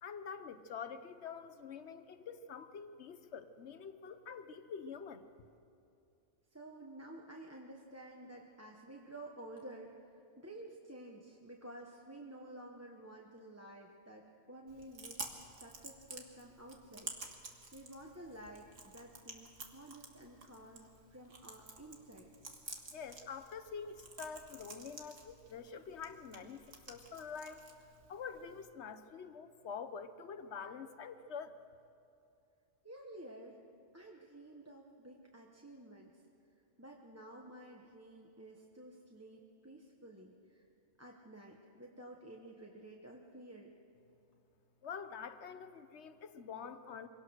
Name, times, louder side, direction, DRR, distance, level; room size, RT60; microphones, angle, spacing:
voice 1, 0.0-5.3 22.9-27.7 28.1-31.6 44.8-47.1, left 6 dB, 65° left, 10 dB, 1.2 m, -46 dB
voice 2, 6.5-15.2 15.6-17.1 17.4-22.3 32.8-33.6 33.9-36.2 36.8-40.6 41.0-43.7, right 1 dB, 15° right, 0 dB, 1.1 m, -52 dB
Chewing mastication, 14.7-28.7, right 3 dB, 85° right, 2.1 m, -51 dB
24.5 x 17.5 x 6.4 m, 2.6 s
omnidirectional pair, 1.3 m